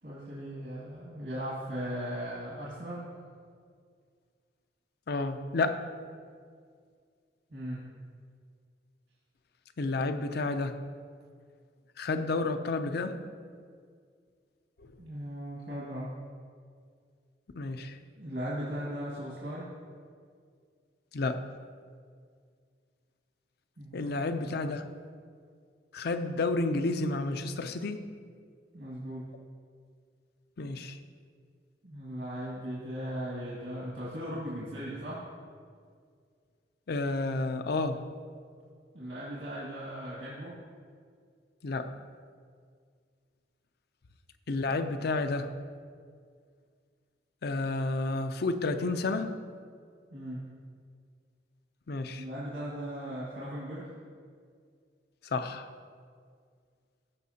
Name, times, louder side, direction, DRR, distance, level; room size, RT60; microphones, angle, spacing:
voice 1, 0.0-3.1 7.5-7.9 15.0-16.1 18.2-19.7 23.8-24.1 24.5-24.6 28.7-29.3 31.8-35.2 38.9-40.6 50.1-50.5 52.1-53.9, equal, 75° right, -7 dB, 2.0 m, -38 dB
voice 2, 5.1-5.9 9.8-10.8 12.0-13.2 14.8-14.9 17.6-18.0 21.1-21.5 23.9-24.9 25.9-28.1 30.6-31.0 36.9-38.1 41.6-42.0 44.5-45.5 47.4-49.4 51.9-52.2 55.2-55.7, left 3 dB, 60° left, 9 dB, 0.5 m, -31 dB
15.5 x 5.7 x 2.8 m, 2.1 s
head